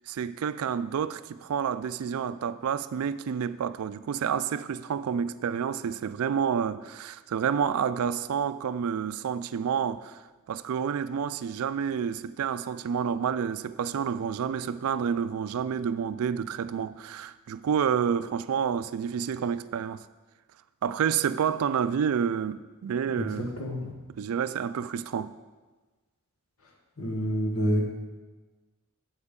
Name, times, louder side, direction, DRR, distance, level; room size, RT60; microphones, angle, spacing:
voice 1, 0.1-10.2 10.5-20.1 20.8-23.5 24.2-25.3, right 7 dB, 80° right, 0.3 m, -29 dB
voice 2, 23.6-23.9 27.0-27.9, equal, 80° left, 1.4 m, -27 dB
8.0 x 8.0 x 3.7 m
head